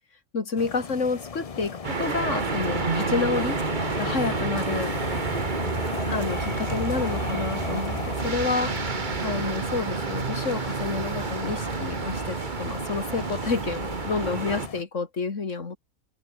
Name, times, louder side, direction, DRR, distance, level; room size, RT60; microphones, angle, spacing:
voice 1, 0.3-3.6 4.0-5.0 6.1-15.8, left 4 dB, 60° left, 2.6 m, -29 dB
sound 1, 0.6-14.8, left 5 dB, 35° left, 0.6 m, -37 dB
sound 2, 1.8-14.7, right 4 dB, 35° right, 1.5 m, -29 dB
open air
omnidirectional pair, 1.5 m